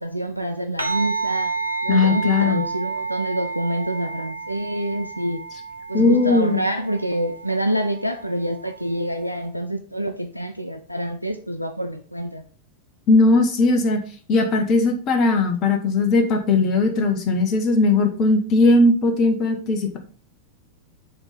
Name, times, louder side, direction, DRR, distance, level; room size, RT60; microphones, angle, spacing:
voice 1, 0.0-1.5 1.8-5.4 5.9-12.4, right 1 dB, 90° left, 0.5 m, -26 dB
sound 1, 0.8-9.5, right 4 dB, 90° right, 0.9 m, -31 dB
voice 2, 1.9-2.6 5.9-6.6 13.1-14.0 14.3-20.0, left 3 dB, 35° left, 1.5 m, -18 dB
6.8 x 3.8 x 5.2 m
figure-of-eight pair, 90°, 0 cm